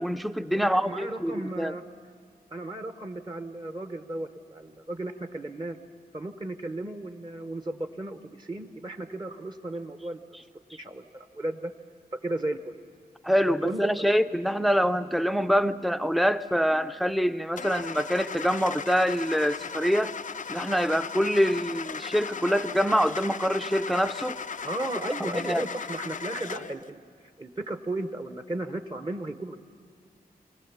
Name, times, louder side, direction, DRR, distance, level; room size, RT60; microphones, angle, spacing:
voice 1, 0.0-1.7 13.2-20.1 20.5-24.4 25.3-25.6, equal, ahead, 13 dB, 0.6 m, -25 dB
voice 2, 0.5-1.8 2.5-5.8 6.1-10.2 10.8-11.7 12.2-12.8 13.6-13.9 24.6-27.0 27.4-29.6, right 1 dB, 25° right, 8 dB, 0.9 m, -34 dB
Car / Engine starting, 17.6-26.8, left 6 dB, 55° left, 0.4 m, -37 dB
23.0 x 17.5 x 7.1 m, 2.3 s
wide cardioid pair, 80°, 16 cm